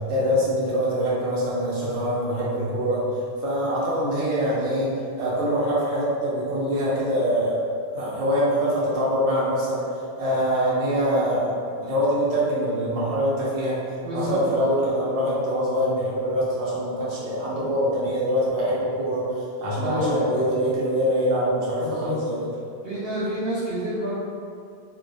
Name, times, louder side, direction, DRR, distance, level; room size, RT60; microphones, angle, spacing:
voice 1, 0.1-3.1 3.4-4.9 5.2-7.6 7.9-9.8 10.2-11.5 11.8-13.8 14.1-19.2 19.6-22.4, equal, 90° right, -7 dB, 0.9 m, -24 dB
voice 2, 14.0-14.4 19.8-20.5 21.8-22.2 22.8-24.1, left 1 dB, 55° right, -11 dB, 0.9 m, -28 dB
2.3 x 2.0 x 2.6 m, 2.3 s
omnidirectional pair, 1.1 m